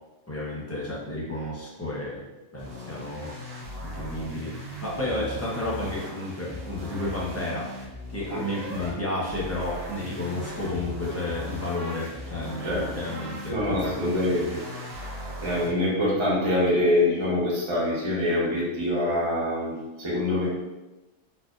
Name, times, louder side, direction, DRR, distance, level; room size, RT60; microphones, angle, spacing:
voice 1, 0.3-2.3 2.5-4.5 4.8-7.7 8.1-14.1, left 1 dB, 15° left, -6 dB, 0.5 m, -32 dB
sound 1, 2.6-8.9 9.2-15.7, equal, 55° right, 1.0 m, -38 dB
voice 2, 13.5-14.4 15.4-20.5, left 1 dB, 25° right, -6 dB, 0.9 m, -25 dB
4.1 x 2.6 x 2.4 m, 1.1 s
omnidirectional pair, 1.3 m